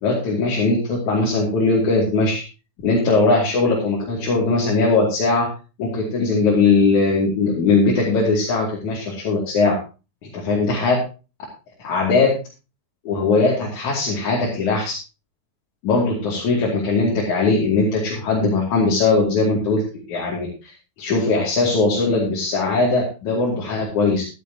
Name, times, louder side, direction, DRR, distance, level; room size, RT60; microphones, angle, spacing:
voice 1, 0.0-2.4 2.8-5.5 5.8-9.8 10.2-11.0 11.8-12.3 13.1-15.0 15.8-19.8 20.1-20.5 21.0-24.2, left 3 dB, 55° left, -3 dB, 3.8 m, -19 dB
14.5 x 12.5 x 2.9 m, 0.32 s
omnidirectional pair, 4.3 m